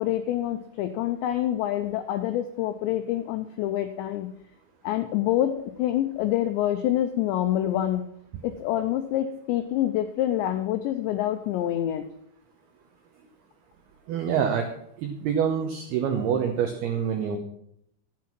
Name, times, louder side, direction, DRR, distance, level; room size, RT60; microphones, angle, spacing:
voice 1, 0.0-4.3 4.8-8.0 8.4-12.0, left 12 dB, 85° left, 8 dB, 2.5 m, -26 dB
voice 2, 14.1-14.7 15.0-17.4, right 7 dB, 85° right, 4 dB, 2.2 m, -26 dB
12.5 x 7.6 x 6.0 m, 0.71 s
omnidirectional pair, 5.9 m